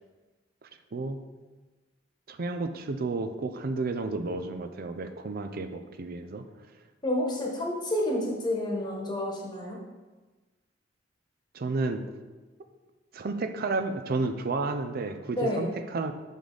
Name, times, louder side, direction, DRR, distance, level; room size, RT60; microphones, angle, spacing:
voice 1, 2.3-6.4 11.5-12.0 13.1-16.1, right 3 dB, 50° right, 8 dB, 0.5 m, -31 dB
voice 2, 7.0-9.8 15.3-15.7, left 1 dB, 25° left, -1 dB, 1.3 m, -29 dB
6.5 x 5.2 x 3.9 m, 1.3 s
head